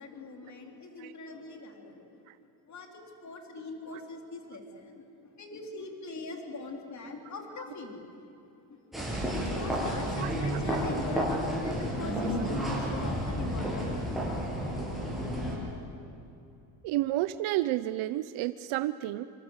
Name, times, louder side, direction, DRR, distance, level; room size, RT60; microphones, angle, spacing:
voice 1, 0.0-2.1 2.7-5.0 5.4-8.3 8.7-14.3, left 3 dB, 35° left, 3 dB, 3.8 m, -42 dB
sound 1, 8.9-15.6, equal, ahead, 7.5 m, -31 dB
voice 2, 16.8-19.3, right 15 dB, 80° right, 13 dB, 0.9 m, -30 dB
26.0 x 26.0 x 8.1 m, 2.8 s
cardioid pair, 135°, 49 cm